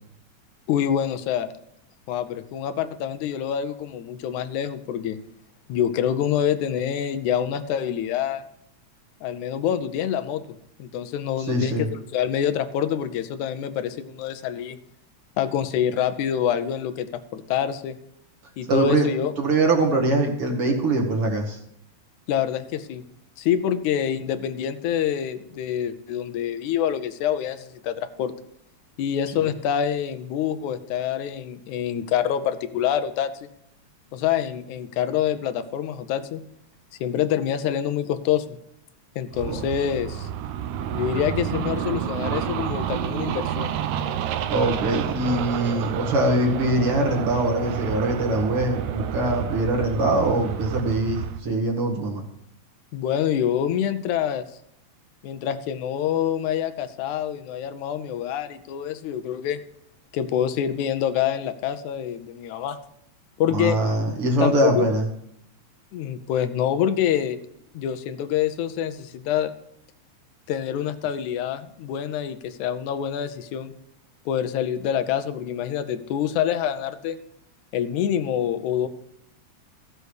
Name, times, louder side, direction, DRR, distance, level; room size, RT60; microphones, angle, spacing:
voice 1, 0.7-1.5 2.1-5.2 5.7-8.4 9.2-10.4 10.8-14.8 15.4-18.0 18.6-19.3 22.3-23.0 23.4-28.3 29.0-33.5 34.1-36.4 37.0-38.6 39.2-40.3 40.9-43.7 52.9-54.5 55.2-59.6 60.1-62.8 63.4-64.0 64.4-64.9 65.9-67.4 67.7-69.5 70.5-73.7 74.3-77.2 77.7-78.9, left 9 dB, 85° left, 11 dB, 2.2 m, -26 dB
voice 2, 11.5-11.9 18.7-19.1 19.4-21.6 39.5-39.6 44.5-52.2 63.5-65.0, right 2 dB, 50° right, 1 dB, 2.6 m, -23 dB
sound 1, 39.3-51.4, right 9 dB, 80° right, 2.0 m, -29 dB
14.0 x 6.8 x 6.4 m, 0.74 s
omnidirectional pair, 3.3 m